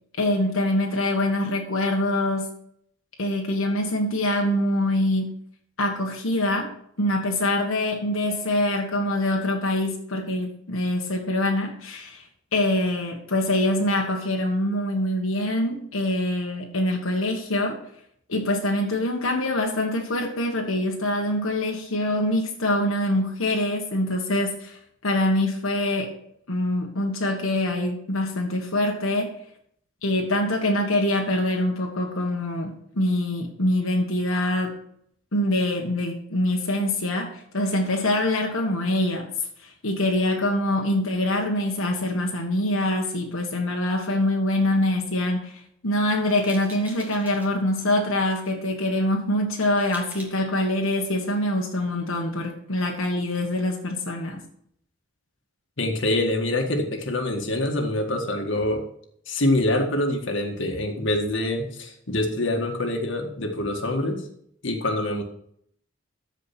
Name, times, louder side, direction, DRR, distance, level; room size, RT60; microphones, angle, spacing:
voice 1, 0.2-2.5 3.2-5.3 5.8-6.7 7.0-12.3 12.5-17.8 18.3-26.1 26.5-29.3 30.0-34.8 35.3-39.3 39.6-54.4, left 1 dB, 85° left, 0 dB, 1.5 m, -24 dB
sound 1, 46.4-47.5 48.2-48.5 49.6-50.3, right 1 dB, 10° right, 1.6 m, -44 dB
voice 2, 55.8-58.8 59.3-64.2 64.6-65.2, left 1 dB, 65° left, 2 dB, 1.8 m, -25 dB
13.5 x 5.0 x 6.0 m, 0.68 s
head